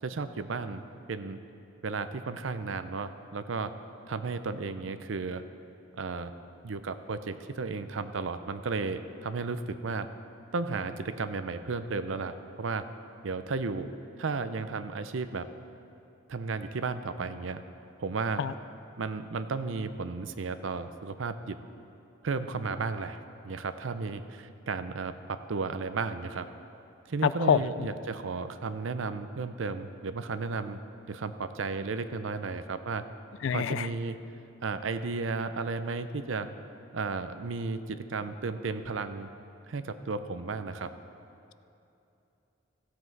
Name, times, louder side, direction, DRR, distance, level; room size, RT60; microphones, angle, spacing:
voice 1, 0.0-0.8 1.1-1.4 1.8-3.7 4.1-5.4 5.9-6.3 6.6-10.1 10.5-12.8 13.2-13.9 14.2-15.5 16.3-17.6 18.0-18.4 19.0-21.6 22.2-26.5 27.1-30.8 31.1-33.0 33.5-34.2 34.6-36.5 36.9-39.3 39.7-40.9, right 4 dB, 75° right, 11 dB, 0.6 m, -34 dB
voice 2, 27.2-27.9 33.4-33.9, left 7 dB, 70° left, 15 dB, 0.4 m, -26 dB
16.0 x 7.8 x 4.6 m, 2.8 s
head